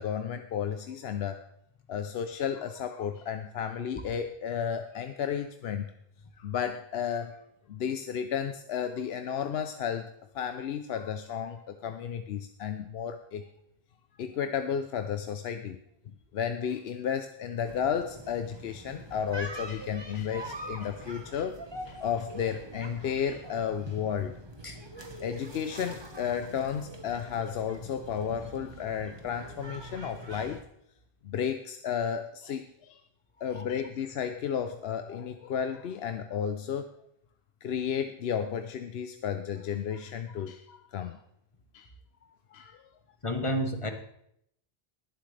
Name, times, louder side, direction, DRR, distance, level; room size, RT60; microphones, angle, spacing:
voice 1, 0.0-1.4 1.9-5.9 6.4-7.4 7.7-10.1 10.3-13.4 14.2-15.8 16.3-21.5 21.9-24.3 25.2-30.6 31.2-33.0 33.4-36.9 37.6-41.2 41.7-41.9 42.5-42.8, left 8 dB, 80° left, 8 dB, 0.9 m, -33 dB
sound 1, 17.7-30.6, right 1 dB, 25° right, 1.2 m, -44 dB
voice 2, 43.2-43.9, equal, 30° left, 6 dB, 1.2 m, -31 dB
20.5 x 7.7 x 3.3 m, 0.73 s
omnidirectional pair, 1.0 m